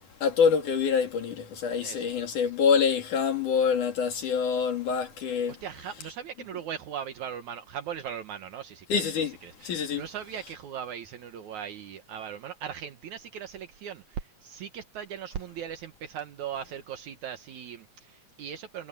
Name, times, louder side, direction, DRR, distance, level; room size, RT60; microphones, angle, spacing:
voice 1, 0.2-5.6 8.9-9.3 9.6-10.0, left 6 dB, 80° left, 4.0 m, -26 dB
voice 2, 5.6-9.0 9.4-18.9, right 8 dB, 70° right, 2.6 m, -39 dB
omnidirectional pair, 3.5 m